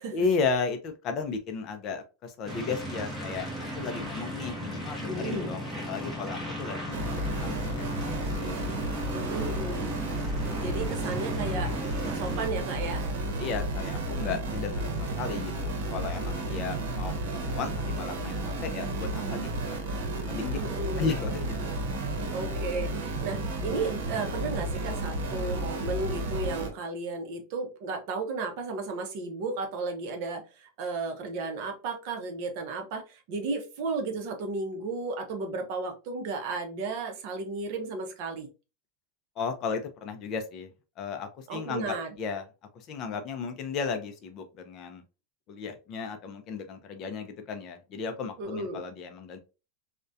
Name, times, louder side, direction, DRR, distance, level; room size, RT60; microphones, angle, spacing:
voice 1, 0.1-3.5 3.7-7.0 7.4-7.5 7.8-8.6 8.8-9.0 13.4-19.9 20.2-20.6 21.0-21.7 39.4-40.7 41.0-42.4 42.7-45.0 45.5-49.4, left 5 dB, 30° left, 7 dB, 0.3 m, -34 dB
sound 1, 2.5-12.5, equal, 5° right, 0.6 m, -36 dB
voice 2, 5.1-5.5 9.1-9.9 10.6-11.7 12.0-13.1 20.5-21.2 22.3-38.5 41.5-42.1 48.4-48.8, right 3 dB, 45° right, 4 dB, 0.5 m, -34 dB
sound 2, 6.9-26.7, right 1 dB, 85° right, 0.7 m, -32 dB
2.3 x 2.1 x 2.5 m, 0.31 s
supercardioid pair, 170°, 0 cm